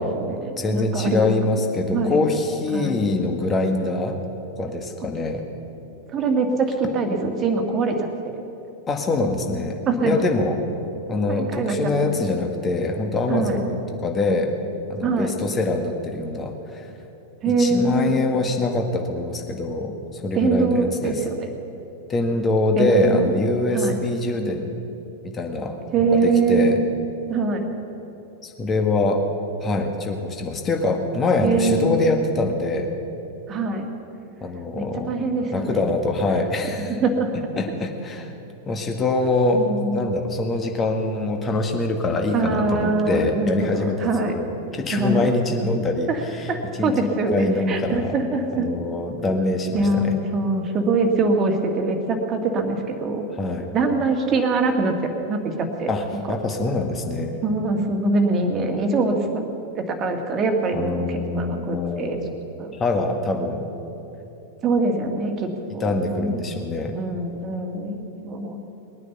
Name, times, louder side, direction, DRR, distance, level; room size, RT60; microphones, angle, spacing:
voice 1, 0.0-1.3 1.9-2.3 2.7-3.0 6.1-8.1 9.9-10.2 11.3-12.1 13.3-13.6 15.0-15.3 17.4-18.2 20.3-21.5 22.8-23.3 23.7-24.0 25.9-26.8 27.3-27.7 31.4-32.0 33.5-33.9 34.8-35.8 36.9-37.3 39.5-40.0 42.3-44.3 44.9-45.3 46.1-46.2 46.5-48.7 49.7-53.3 53.7-55.0 55.3-55.9 57.4-59.5 59.8-62.2 62.6-62.7 64.6-66.4 66.9-68.6, right 3 dB, 30° right, 4 dB, 1.9 m, -23 dB
voice 2, 0.6-4.2 4.6-5.4 8.9-10.6 11.1-14.5 14.9-16.9 17.6-21.2 22.1-24.7 25.2-26.8 28.4-29.2 29.6-32.9 34.4-35.2 35.5-36.9 37.6-38.3 38.7-39.6 39.9-46.5 46.8-48.2 48.5-50.1 53.4-53.7 55.9-57.4 60.7-62.3 62.8-63.6 65.7-66.9, left 2 dB, 20° left, 3 dB, 1.8 m, -24 dB
20.5 x 9.5 x 6.9 m, 2.9 s
figure-of-eight pair, 90°, 0 cm